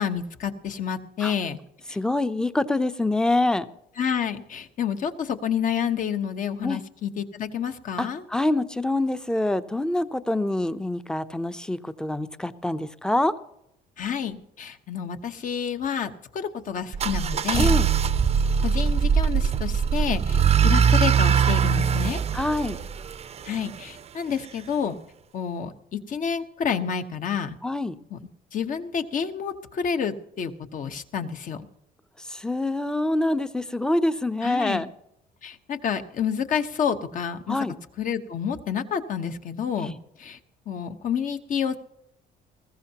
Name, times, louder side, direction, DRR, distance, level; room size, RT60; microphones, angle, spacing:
voice 1, 0.0-1.6 1.9-2.0 4.0-8.2 14.0-17.8 18.6-22.2 23.4-24.9 25.3-27.6 28.1-28.2 28.5-31.7 34.4-34.8 35.4-37.6 38.0-39.9 40.2-40.4 40.7-41.8, left 7 dB, 50° left, 8 dB, 1.2 m, -29 dB
voice 2, 1.9-3.7 6.6-6.8 8.0-13.3 17.6-17.9 22.3-22.8 27.6-27.9 32.3-34.9 37.5-37.7 39.8-40.0, left 2 dB, 5° left, 12 dB, 0.7 m, -25 dB
sound 1, 16.9-23.8, right 7 dB, 40° right, 0.6 m, -22 dB
20.5 x 15.0 x 2.9 m, 0.81 s
cardioid pair, 110°, 17 cm